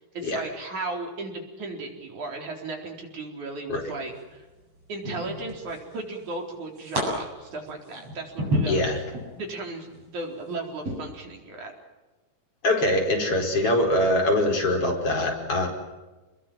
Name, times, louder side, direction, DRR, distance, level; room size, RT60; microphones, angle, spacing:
voice 1, 0.1-4.4 4.9-8.8 9.3-11.7, right 3 dB, 70° right, 2 dB, 5.5 m, -35 dB
sound 1, 3.9-4.3 5.0-5.9 6.3-7.0 7.5-9.3 9.8-10.1 10.8-11.0, equal, 50° right, 8.8 m, -30 dB
voice 2, 8.6-9.0 12.6-15.7, left 1 dB, 45° left, 2 dB, 5.8 m, -23 dB
29.5 x 21.5 x 7.6 m, 1.2 s
omnidirectional pair, 3.6 m